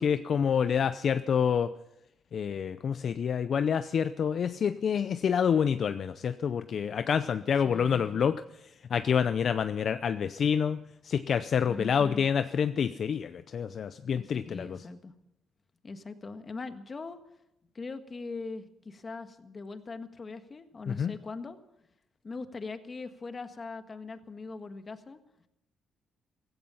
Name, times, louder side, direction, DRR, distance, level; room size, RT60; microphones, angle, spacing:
voice 1, 0.0-1.7 2.3-8.4 8.9-14.8 20.9-21.2, left 7 dB, 55° left, 12 dB, 0.5 m, -27 dB
voice 2, 7.6-8.2 11.7-12.3 14.2-15.1 15.8-17.2 17.7-21.6 22.2-25.2, left 3 dB, 35° left, 9 dB, 1.5 m, -41 dB
16.5 x 15.5 x 5.7 m, 0.86 s
cardioid pair, 90°, 0 cm